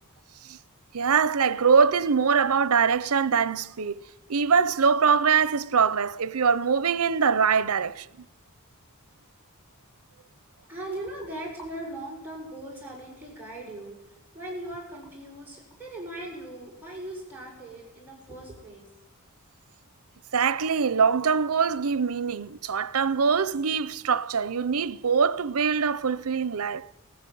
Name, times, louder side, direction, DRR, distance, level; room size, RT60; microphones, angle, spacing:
voice 1, 0.9-4.0 4.3-8.1 20.3-26.9, right 6 dB, 85° right, 0.7 m, -23 dB
voice 2, 10.7-18.9, right 1 dB, 10° right, 7.4 m, -39 dB
18.5 x 15.0 x 9.3 m
head